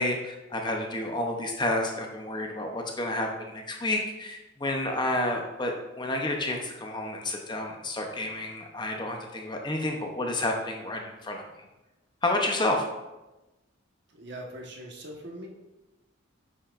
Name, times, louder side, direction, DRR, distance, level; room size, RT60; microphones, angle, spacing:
voice 1, 0.0-11.5 12.2-12.8, left 1 dB, 20° left, 2 dB, 0.7 m, -30 dB
voice 2, 14.1-15.5, right 1 dB, 55° right, -1 dB, 1.3 m, -41 dB
9.7 x 5.7 x 2.5 m, 1.0 s
head